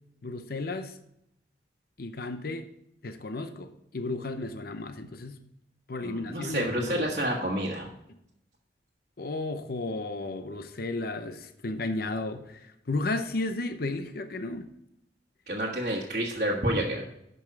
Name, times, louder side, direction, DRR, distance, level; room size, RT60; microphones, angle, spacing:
voice 1, 0.2-1.0 2.0-2.7 3.0-5.4 5.9-7.2 9.2-14.7, left 2 dB, 55° left, 9 dB, 0.7 m, -33 dB
voice 2, 6.0-7.9 15.5-17.0, right 1 dB, 45° right, -5 dB, 1.4 m, -29 dB
11.0 x 5.4 x 4.6 m, 0.79 s
head